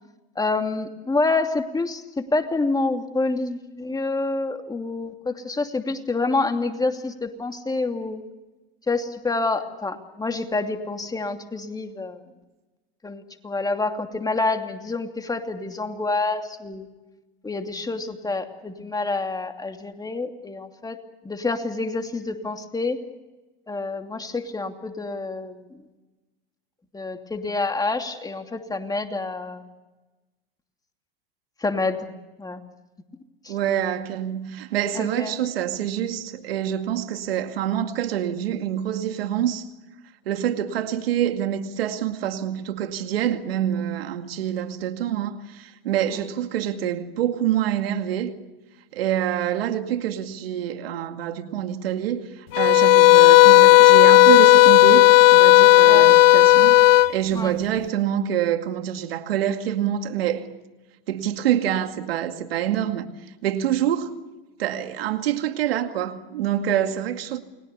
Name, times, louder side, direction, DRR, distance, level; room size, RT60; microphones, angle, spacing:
voice 1, 0.3-8.2 8.9-12.2 13.0-16.9 17.4-21.0 21.2-23.0 23.7-25.8 26.9-29.7 31.6-32.1 32.4-32.6 33.4-33.5 34.9-35.4 55.8-56.1 57.3-57.5, left 3 dB, 15° left, 2.8 m, -27 dB
voice 2, 33.5-39.7 40.3-48.4 48.9-60.5 61.1-63.1 63.4-64.1 64.6-67.4, right 10 dB, 85° right, 2.3 m, -26 dB
sound 1, 52.5-57.1, left 15 dB, 75° left, 0.8 m, -12 dB
29.5 x 21.5 x 6.9 m
hypercardioid pair, 105°, 29 cm